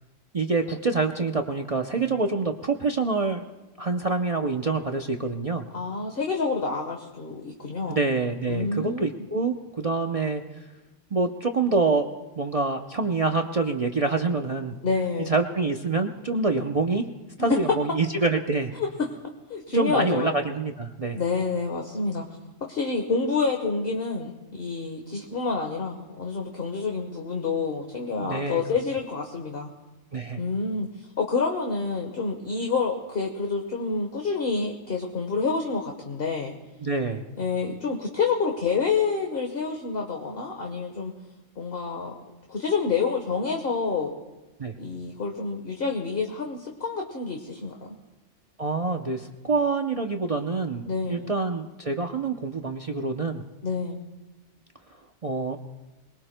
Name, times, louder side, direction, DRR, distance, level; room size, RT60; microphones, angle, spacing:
voice 1, 0.3-3.4 3.8-5.6 7.9-10.4 11.1-12.1 12.4-14.7 15.3-17.1 17.4-18.7 19.7-21.2 28.2-28.6 30.1-30.4 36.8-37.3 44.6-44.7 48.6-53.4 55.2-55.6, right 3 dB, 35° right, 3 dB, 0.6 m, -26 dB
voice 2, 5.7-8.0 8.5-9.1 14.8-15.3 17.5-17.6 18.8-18.9 19.5-20.4 21.1-22.2 22.7-29.7 30.4-30.9 31.2-36.5 37.4-41.1 41.6-42.1 42.5-44.1 44.8-48.0 50.9-51.3 53.6-54.0, left 4 dB, 50° left, 1 dB, 1.4 m, -28 dB
27.0 x 21.0 x 2.2 m, 1.1 s
omnidirectional pair, 1.3 m